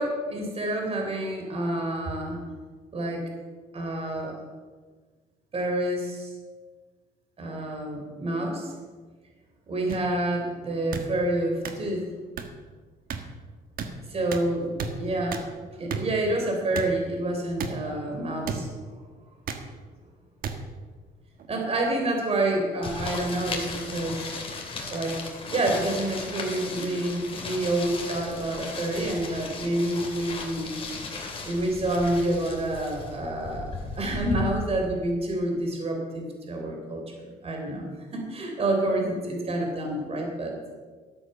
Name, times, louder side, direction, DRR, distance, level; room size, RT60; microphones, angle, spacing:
voice 1, 0.0-2.4 2.9-3.2 3.7-4.3 5.5-6.3 7.4-8.7 9.7-12.1 14.1-14.7 15.0-15.4 15.8-18.7 21.5-24.3 24.9-25.2 25.5-30.7 31.4-40.5, right 1 dB, 35° right, 1 dB, 3.7 m, -28 dB
sound 1, 9.9-10.0 10.9-11.1 11.6-11.7 12.4-12.5 13.1-13.2 13.8-13.9 14.3-14.4 14.8-14.9 15.3-15.4 15.9-16.0 16.7-16.9 17.6-17.7 18.4-18.6 19.5-19.6 20.4-20.5 21.4-21.5, right 6 dB, 60° right, 1.4 m, -32 dB
sound 2, 22.8-34.5, left 3 dB, 35° left, 2.6 m, -36 dB
13.0 x 8.0 x 6.8 m, 1.4 s
cardioid pair, 110°, 17 cm